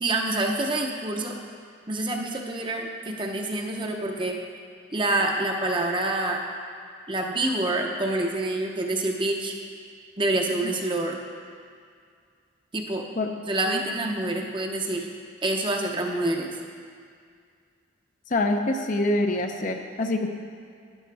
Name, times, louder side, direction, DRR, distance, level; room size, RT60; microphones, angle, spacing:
voice 1, 0.0-1.4 1.9-4.4 4.9-6.4 7.1-9.5 10.2-11.2 12.7-13.0 13.5-15.1 15.4-16.5, right 2 dB, 25° right, 2 dB, 0.7 m, -27 dB
voice 2, 18.3-20.3, left 2 dB, 40° left, 4 dB, 0.6 m, -25 dB
11.5 x 10.5 x 3.4 m, 2.2 s
head